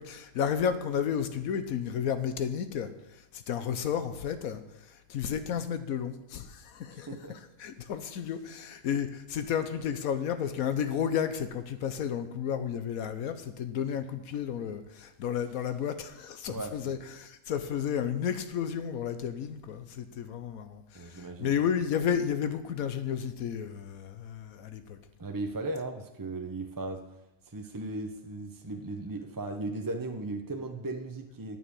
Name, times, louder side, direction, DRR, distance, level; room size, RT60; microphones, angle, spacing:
voice 1, 0.0-25.0, left 8 dB, 80° left, 10 dB, 1.2 m, -32 dB
voice 2, 6.9-7.3 16.5-17.0 20.9-21.5 25.2-27.0 27.5-31.6, right 2 dB, 25° right, 4 dB, 0.4 m, -37 dB
9.3 x 6.8 x 8.4 m, 0.95 s
omnidirectional pair, 1.5 m